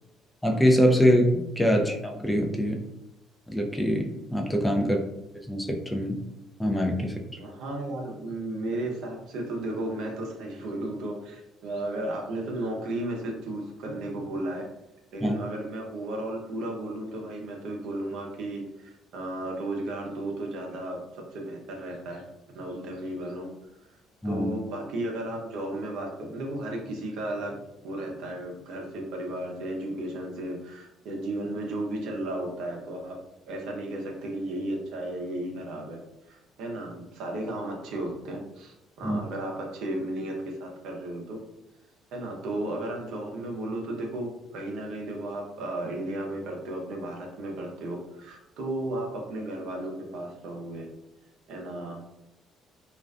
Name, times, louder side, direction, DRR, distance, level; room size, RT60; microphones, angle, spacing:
voice 1, 0.4-2.8 3.5-5.0 5.5-6.2 6.6-7.2 15.2-15.3 24.2-24.5 39.0-39.2, equal, 10° left, 2 dB, 0.4 m, -24 dB
voice 2, 7.0-14.7 15.1-21.0 21.3-22.2 22.5-23.5 24.2-27.5 27.8-33.2 33.5-36.0 36.3-41.4 42.1-50.9 51.5-52.1, right 1 dB, 70° right, 0 dB, 0.6 m, -34 dB
2.4 x 2.2 x 2.3 m, 0.88 s
supercardioid pair, 65°, 0 cm